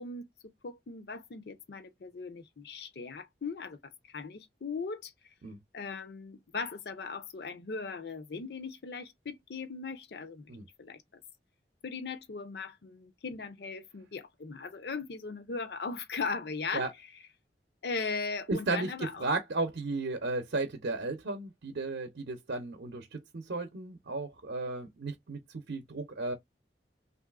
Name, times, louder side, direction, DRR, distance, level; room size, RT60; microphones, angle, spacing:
voice 1, 0.0-5.1 5.7-10.5 10.8-11.2 11.8-16.9 17.8-19.3, left 4 dB, 65° left, 0.6 m, -38 dB
voice 2, 18.5-25.4 25.7-26.3, right 3 dB, 75° right, 0.6 m, -34 dB
3.2 x 2.5 x 2.3 m
head